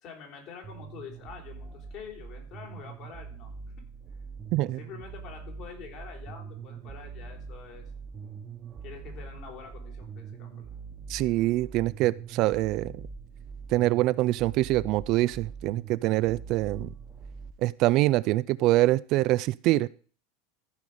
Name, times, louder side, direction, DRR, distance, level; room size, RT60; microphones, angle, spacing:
voice 1, 0.0-3.6 4.7-7.9 8.8-10.8, left 7 dB, 50° left, 3.7 m, -46 dB
sound 1, 0.6-17.5, right 5 dB, 25° right, 1.2 m, -43 dB
voice 2, 11.1-12.9 13.7-16.9 17.6-19.9, right 17 dB, 50° right, 0.3 m, -24 dB
14.0 x 5.0 x 5.5 m
supercardioid pair, 120°, 0 cm